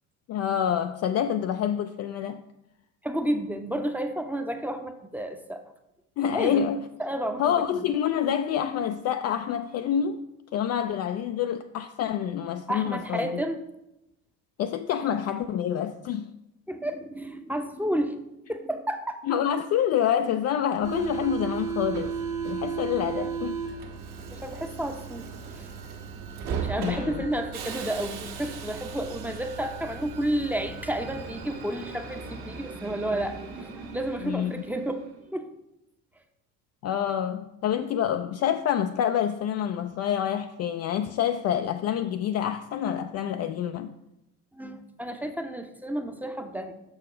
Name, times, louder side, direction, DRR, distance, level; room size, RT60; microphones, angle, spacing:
voice 1, 0.3-2.4 6.2-6.9 7.4-13.4 14.6-16.3 19.3-22.1 22.4-23.6 26.8-27.3 34.2-34.5 36.8-43.9, left 9 dB, 35° left, 0.4 m, -27 dB
voice 2, 3.0-5.6 6.3-6.6 7.0-7.8 12.7-13.6 16.7-18.2 18.5-19.2 23.0-23.3 24.3-25.3 25.5-25.7 26.5-35.0 35.3-35.5 44.5-46.7, right 1 dB, 5° right, 0.7 m, -31 dB
Subway metro underground, 20.8-35.2, right 6 dB, 55° right, 1.5 m, -36 dB
6.5 x 4.9 x 5.0 m
hypercardioid pair, 65°, 45 cm